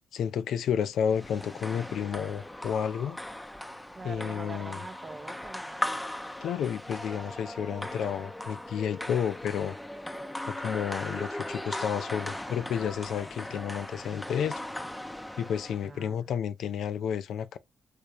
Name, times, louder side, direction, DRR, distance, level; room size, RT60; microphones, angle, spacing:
voice 1, 0.1-3.2 4.0-4.8 6.4-9.8 10.5-14.6 15.4-17.6, left 8 dB, 70° left, 0.4 m, -31 dB
sound 1, 1.0-15.9, left 1 dB, 10° left, 0.5 m, -38 dB
voice 2, 4.0-5.9 15.8-16.3, right 4 dB, 40° right, 0.5 m, -44 dB
3.4 x 3.2 x 2.4 m
hypercardioid pair, 40°, 0 cm